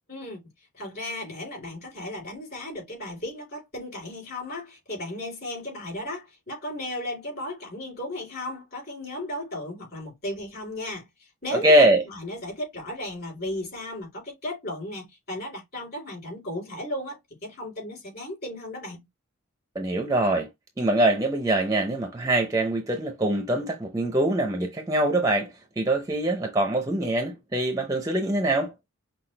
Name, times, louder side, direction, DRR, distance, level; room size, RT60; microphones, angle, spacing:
voice 1, 0.1-0.4 0.7-19.1, left 1 dB, 45° left, 3.7 m, -35 dB
voice 2, 11.5-12.0 19.7-20.5 20.8-28.7, right 1 dB, 15° right, 0.5 m, -23 dB
5.8 x 2.4 x 3.2 m
head